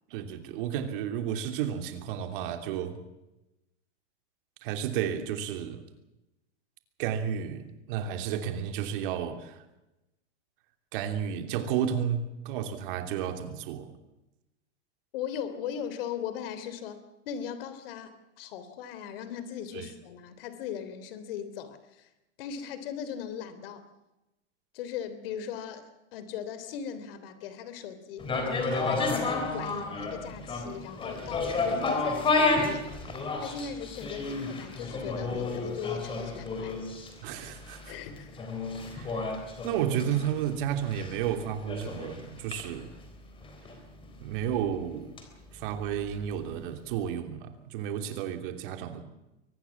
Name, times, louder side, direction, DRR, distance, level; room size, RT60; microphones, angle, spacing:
voice 1, 0.1-3.0 4.6-5.8 7.0-9.6 10.9-13.9 19.7-19.9 37.2-38.0 38.9-39.3 39.6-43.0 44.2-45.1 45.5-49.0, right 9 dB, 45° right, 7 dB, 3.1 m, -32 dB
voice 2, 15.1-17.0 17.2-22.1 22.4-23.8 24.7-28.3 28.7-32.9 33.4-36.8 37.9-38.5, left 8 dB, 50° left, 12 dB, 3.3 m, -38 dB
sound 1, 28.2-46.3 46.6-46.7, left 3 dB, 15° left, 3.7 m, -32 dB
24.0 x 19.0 x 7.2 m, 0.96 s
supercardioid pair, 155°, 36 cm